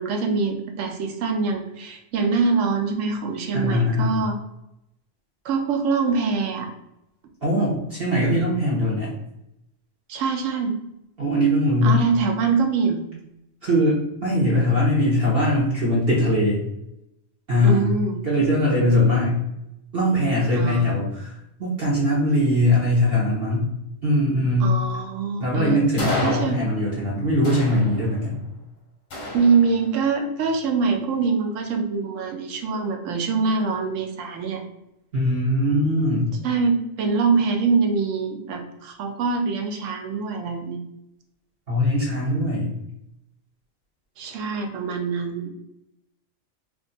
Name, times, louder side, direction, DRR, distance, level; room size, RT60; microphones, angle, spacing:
voice 1, 0.0-4.4 5.4-6.7 10.1-10.8 11.8-13.0 17.6-18.2 20.5-21.0 24.6-25.8 26.2-26.6 29.3-34.6 36.4-40.8 44.2-45.5, right 4 dB, 75° right, 4 dB, 0.9 m, -24 dB
voice 2, 3.5-4.1 7.4-9.1 11.2-12.0 13.6-16.6 17.5-17.9 18.2-19.4 19.9-23.7 24.0-24.8 25.4-28.4 35.1-36.3 41.7-42.7, left 1 dB, 50° right, -6 dB, 1.0 m, -21 dB
sound 1, 26.0-27.0 27.4-28.4 29.1-30.1, left 1 dB, 45° left, 0.6 m, -32 dB
2.5 x 2.4 x 3.9 m, 0.84 s
omnidirectional pair, 1.3 m